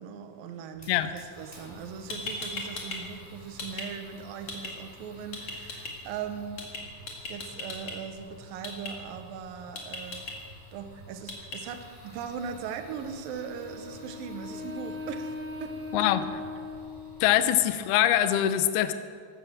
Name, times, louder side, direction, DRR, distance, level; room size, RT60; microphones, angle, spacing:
voice 1, 0.0-6.6 7.3-10.2 10.7-16.1, right 7 dB, 70° right, 7 dB, 2.4 m, -39 dB
Fire, 0.7-18.4, equal, 10° left, 4.8 m, -51 dB
sound 1, 1.8-1.9 2.1-3.0 3.3-3.9 4.5-4.7 5.3-5.9 6.6-6.8 7.1-7.9 8.6-8.9 9.8-10.3 11.3-11.6, left 3 dB, 40° left, 2.5 m, -36 dB
Wind instrument woodwind instrument, 13.2-17.5, left 3 dB, 40° right, 2.6 m, -39 dB
voice 2, 15.9-16.2 17.2-18.9, left 12 dB, 80° left, 11 dB, 2.3 m, -23 dB
15.0 x 12.5 x 7.4 m, 2.2 s
omnidirectional pair, 5.1 m